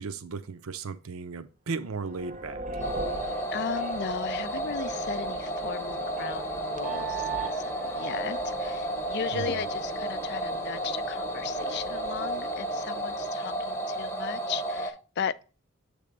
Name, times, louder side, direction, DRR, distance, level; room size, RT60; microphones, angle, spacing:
voice 1, 0.0-2.6 9.3-9.5, right 4 dB, 75° right, 0.7 m, -35 dB
sound 1, 1.9-13.3, right 3 dB, 35° right, 0.6 m, -39 dB
sound 2, 2.8-14.9, right 1 dB, 10° left, 1.0 m, -33 dB
voice 2, 3.5-15.4, left 6 dB, 50° left, 0.4 m, -36 dB
7.5 x 3.4 x 5.1 m
head